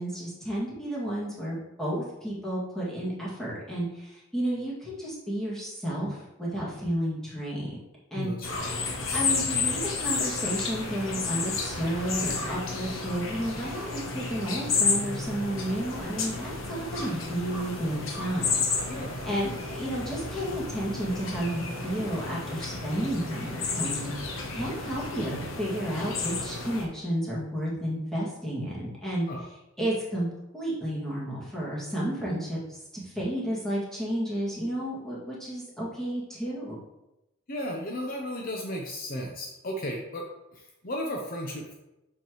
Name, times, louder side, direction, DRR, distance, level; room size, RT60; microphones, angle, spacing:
voice 1, 0.0-7.8 8.1-8.3 9.1-18.5 19.2-29.3 29.8-30.3 30.5-36.8, right 1 dB, ahead, -8 dB, 2.2 m, -32 dB
voice 2, 8.1-8.7 18.9-19.3 29.3-29.4 37.5-41.7, equal, 45° left, 1 dB, 0.8 m, -35 dB
sound 1, 8.4-26.8, left 4 dB, 75° left, 1.0 m, -32 dB
6.9 x 6.0 x 3.1 m, 0.94 s
head